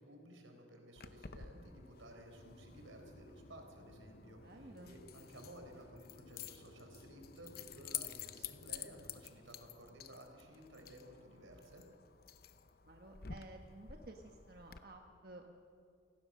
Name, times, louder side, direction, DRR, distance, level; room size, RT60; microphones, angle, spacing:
voice 1, 0.0-11.8, right 1 dB, 90° right, 4 dB, 4.3 m, -56 dB
Keys jangling, 1.0-14.8, left 9 dB, 50° left, 0.8 m, -51 dB
sound 1, 2.3-9.3, left 1 dB, 75° left, 2.1 m, -60 dB
voice 2, 4.4-5.0 12.8-15.5, right 2 dB, 50° right, 3 dB, 1.3 m, -54 dB
28.5 x 18.0 x 6.5 m, 2.4 s
head